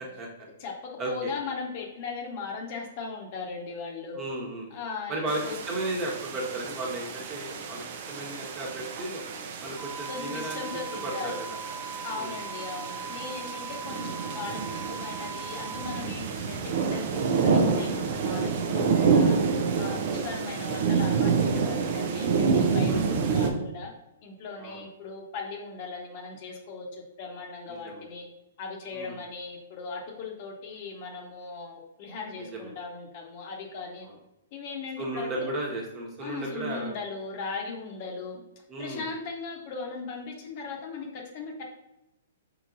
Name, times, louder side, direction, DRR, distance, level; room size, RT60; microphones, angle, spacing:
voice 1, 0.4-4.2 4.7-5.6 10.1-11.4 12.0-19.4 19.8-23.9 24.2-28.3 28.6-34.1 34.5-35.5 36.2-38.4 38.8-41.6, left 4 dB, 50° left, 1 dB, 0.9 m, -38 dB
voice 2, 1.0-1.3 4.1-4.7 5.1-5.4 5.7-9.2 9.6-10.6 11.0-11.6 12.2-12.4 20.1-20.3 24.6-24.8 27.7-28.1 28.9-29.1 32.4-32.7 35.0-36.9 38.7-39.1, right 2 dB, 30° right, -2 dB, 1.2 m, -34 dB
sound 1, 5.3-23.5, right 5 dB, 55° right, 0.6 m, -28 dB
sound 2, 9.8-16.0, right 4 dB, ahead, 0.6 m, -40 dB
4.6 x 3.9 x 2.6 m, 0.91 s
hypercardioid pair, 130°, 0 cm